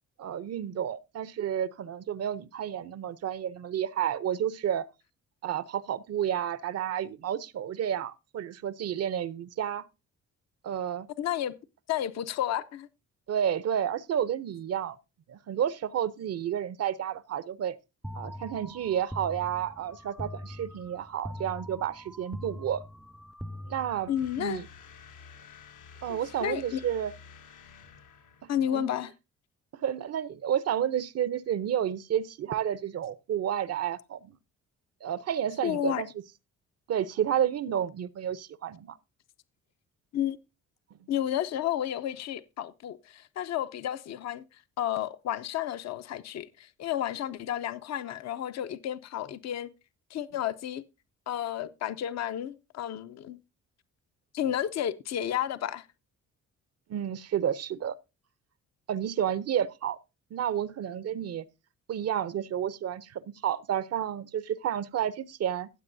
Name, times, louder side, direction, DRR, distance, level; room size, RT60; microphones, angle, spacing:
voice 1, 0.2-4.9 5.4-9.9 10.6-11.1 13.3-15.0 15.3-17.8 18.1-22.8 23.7-24.1 24.4-24.7 26.0-27.1 28.7-28.9 29.7-34.3 35.0-36.1 36.9-39.0 56.9-58.0 58.9-60.0 60.3-61.4 61.9-65.7, right 9 dB, 55° right, 0.7 m, -31 dB
voice 2, 11.2-11.5 11.9-12.9 24.1-24.6 26.1-26.8 28.5-29.1 35.6-36.0 40.1-40.4 41.1-44.4 44.8-49.7 50.1-50.8 51.3-53.4 54.3-55.9, left 11 dB, 60° left, 0.7 m, -31 dB
sound 1, 18.0-24.4, equal, ahead, 0.5 m, -42 dB
sound 2, 24.2-28.9, left 6 dB, 80° left, 1.2 m, -51 dB
15.5 x 7.7 x 2.6 m
cardioid pair, 90°, 30 cm